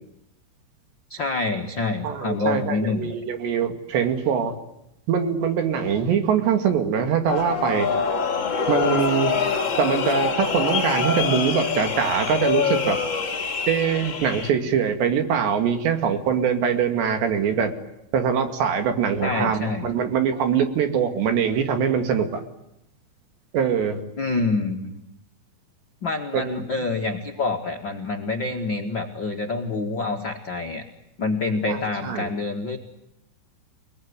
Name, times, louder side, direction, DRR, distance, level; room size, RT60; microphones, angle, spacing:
voice 1, 1.1-3.2 19.2-19.9 24.2-25.0 26.0-30.8 31.2-32.8, left 3 dB, 55° left, 1 dB, 1.3 m, -27 dB
voice 2, 2.0-4.5 5.1-7.9 8.7-9.3 9.8-13.0 13.7-17.7 18.1-22.4 23.5-24.0 26.3-26.6 31.7-32.3, right 7 dB, 70° right, 6 dB, 4.4 m, -23 dB
sound 1, 7.3-14.5, left 5 dB, 35° left, 2.1 m, -25 dB
29.5 x 20.0 x 9.8 m, 0.85 s
omnidirectional pair, 5.3 m